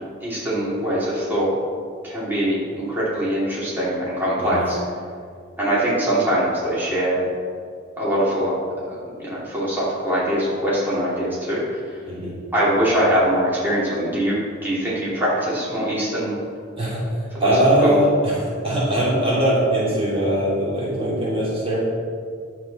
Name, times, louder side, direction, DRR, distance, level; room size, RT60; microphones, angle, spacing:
voice 1, 0.2-1.5 2.0-4.8 5.6-7.3 8.0-8.6 8.9-11.8 12.5-16.3 17.4-17.5 17.8-18.0, right 1 dB, 10° right, -9 dB, 2.9 m, -22 dB
voice 2, 17.4-21.8, right 1 dB, 30° right, -7 dB, 2.8 m, -21 dB
11.0 x 8.4 x 4.3 m, 2.2 s
head